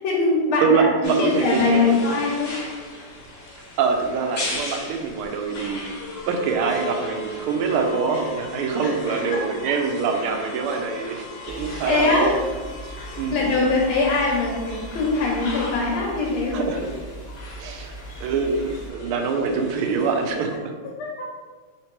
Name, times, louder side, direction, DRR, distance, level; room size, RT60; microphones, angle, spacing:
voice 1, 0.0-2.5 8.8-8.9 9.3-9.4 11.4-11.6 11.8-12.3 13.0-16.9 21.0-21.3, left 3 dB, 80° left, -2 dB, 1.5 m, -22 dB
voice 2, 0.6-1.8 3.8-5.9 6.3-12.4 13.2-13.6 16.5-16.8 17.6-20.5, right 5 dB, 90° right, 4 dB, 1.5 m, -24 dB
sound 1, 1.0-20.6, left 2 dB, 60° left, 1.4 m, -37 dB
sound 2, 11.4-18.9, right 2 dB, 45° right, 0.6 m, -40 dB
3.7 x 2.9 x 4.4 m, 1.5 s
omnidirectional pair, 2.3 m